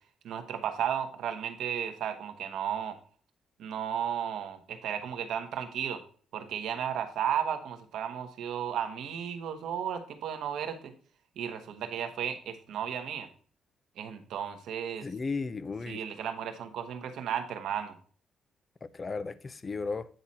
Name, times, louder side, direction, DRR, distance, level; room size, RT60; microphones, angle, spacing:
voice 1, 0.2-2.9 3.6-6.0 6.3-10.9 11.4-13.3 14.0-15.1 15.9-18.0, right 9 dB, 75° right, 1.3 m, -34 dB
voice 2, 15.0-16.0 18.8-20.1, left 4 dB, 35° left, 0.6 m, -35 dB
9.2 x 4.0 x 4.2 m
cardioid pair, 90°, 0 cm